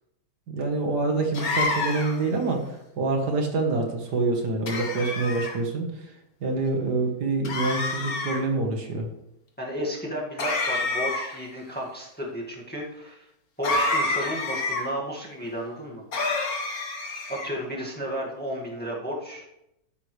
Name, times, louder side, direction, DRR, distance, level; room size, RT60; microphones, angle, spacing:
voice 1, 0.5-6.1 6.4-9.1, right 3 dB, 65° right, 3 dB, 2.1 m, -26 dB
sound 1, 1.3-2.3 4.7-5.6 7.4-8.4 10.4-11.5 13.6-14.8 16.1-17.5, left 2 dB, 55° left, 1.9 m, -28 dB
voice 2, 9.6-13.3 13.6-16.0 17.3-19.5, equal, 5° left, -3 dB, 1.9 m, -33 dB
13.0 x 9.4 x 3.3 m, 0.85 s
omnidirectional pair, 1.9 m